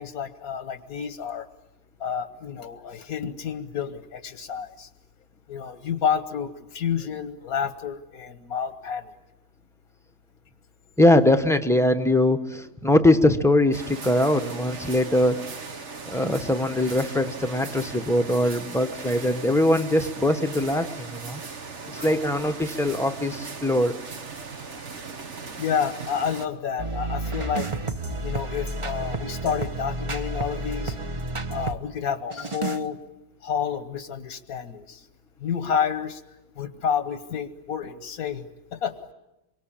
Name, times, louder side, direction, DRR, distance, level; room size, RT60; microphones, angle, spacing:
voice 1, 0.0-1.5 2.0-4.9 5.5-9.1 22.0-22.3 24.7-25.2 25.6-27.7 28.2-30.9 31.5-33.0 33.4-35.0 35.4-36.2 36.6-38.9, left 7 dB, 90° left, 10 dB, 1.6 m, -30 dB
voice 2, 11.0-15.4 16.1-21.4 22.0-24.0, left 1 dB, ahead, 7 dB, 0.9 m, -22 dB
sound 1, 13.7-26.5, right 4 dB, 55° right, 1.7 m, -38 dB
sound 2, 26.8-31.8 32.3-32.8, right 2 dB, 25° right, 0.9 m, -31 dB
26.5 x 23.5 x 8.7 m, 0.95 s
omnidirectional pair, 1.5 m